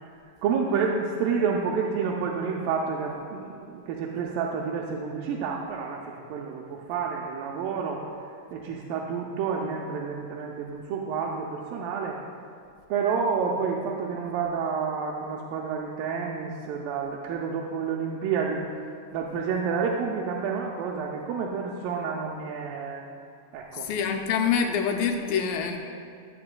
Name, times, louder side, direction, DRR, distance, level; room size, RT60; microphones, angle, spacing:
voice 1, 0.4-8.0 8.5-12.2 12.9-18.6 19.1-23.0 23.5-23.9, right 6 dB, 85° right, -2 dB, 2.3 m, -29 dB
voice 2, 23.7-25.8, left 6 dB, 90° left, 4 dB, 2.4 m, -26 dB
13.5 x 7.8 x 2.2 m, 2.4 s
omnidirectional pair, 4.0 m